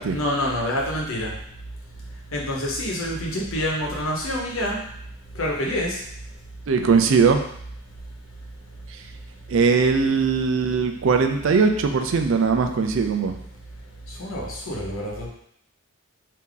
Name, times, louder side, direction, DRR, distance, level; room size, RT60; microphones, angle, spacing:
voice 1, 0.1-1.3 2.3-4.8 5.4-6.0 14.2-15.3, left 1 dB, 85° left, -2 dB, 1.0 m, -27 dB
voice 2, 6.7-7.4 9.5-13.3, right 5 dB, 70° right, 6 dB, 0.4 m, -20 dB
3.5 x 2.8 x 3.8 m, 0.69 s
head